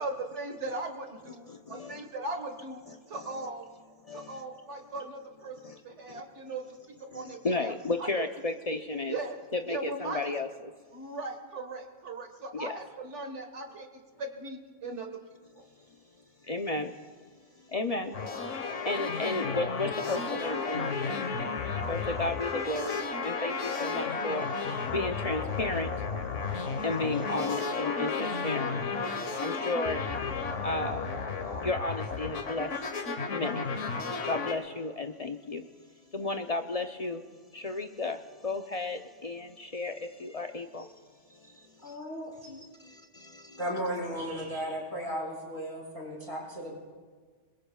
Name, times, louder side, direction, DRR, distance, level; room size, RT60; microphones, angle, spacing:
voice 1, 0.0-2.8 3.1-3.7 4.1-6.6 7.1-7.7 8.0-8.3 9.1-9.4 9.7-10.3 10.9-13.9 14.2-15.1 15.6-15.7, right 2 dB, 70° right, 4 dB, 1.8 m, -38 dB
voice 2, 1.5-2.0 3.1-3.5 4.0-4.4 5.6-5.8 6.1-6.2 7.1-9.2 9.5-10.7 12.5-12.8 16.4-16.9 17.7-21.3 21.9-26.1 26.4-26.5 26.8-28.8 29.3-30.0 30.6-31.0 31.6-32.7 33.3-33.7 34.3-35.6 36.1-37.2 37.5-40.9 41.3-41.7 42.8-43.6, left 2 dB, 40° left, 6 dB, 0.6 m, -34 dB
sound 1, 18.1-34.5, left 4 dB, 85° left, 1.6 m, -33 dB
voice 3, 41.8-42.7 43.6-46.8, equal, 25° right, -5 dB, 5.7 m, -35 dB
29.0 x 21.5 x 2.3 m, 1.5 s
omnidirectional pair, 1.2 m